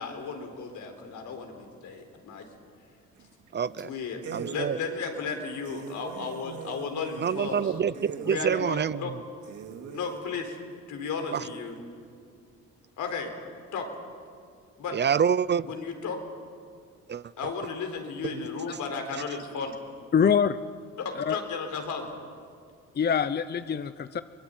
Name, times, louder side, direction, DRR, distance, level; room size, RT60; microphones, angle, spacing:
voice 1, 0.0-2.5 3.8-4.2 4.5-7.6 8.2-9.1 9.9-10.6 10.9-11.8 13.0-13.3 13.7-13.9 14.8-14.9 15.7-16.2 17.4-19.7 21.0-22.1, left 5 dB, 75° left, 4 dB, 4.3 m, -34 dB
sound 1, 3.2-3.5 3.8-3.9 4.2-4.6 5.1-5.2 5.6-8.4 9.0-9.1 9.4-10.2, right 7 dB, 75° right, 2.6 m, -40 dB
voice 2, 3.5-3.9 4.3-4.8 7.2-9.1 11.3-11.5 14.9-15.7 17.1-17.5 18.3-18.4, right 7 dB, 35° right, 18 dB, 0.5 m, -27 dB
voice 3, 20.1-20.6 21.1-21.4 22.9-24.2, left 7 dB, 35° left, 13 dB, 0.7 m, -24 dB
23.0 x 22.0 x 9.3 m, 2.2 s
cardioid pair, 90°, 30 cm